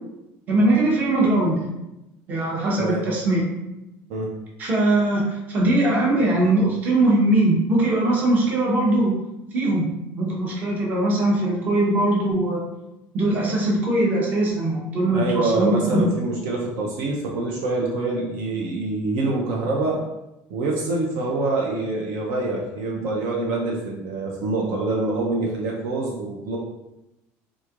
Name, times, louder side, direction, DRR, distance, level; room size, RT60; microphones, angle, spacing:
voice 1, 0.5-1.7 2.3-3.4 4.6-9.1 9.5-9.9 10.2-12.6 13.1-16.0, right 1 dB, 30° right, -3 dB, 0.8 m, -21 dB
voice 2, 15.1-20.0 20.5-26.6, right 2 dB, 60° right, -2 dB, 0.6 m, -25 dB
3.6 x 3.1 x 2.4 m, 0.93 s
cardioid pair, 165°, 6 cm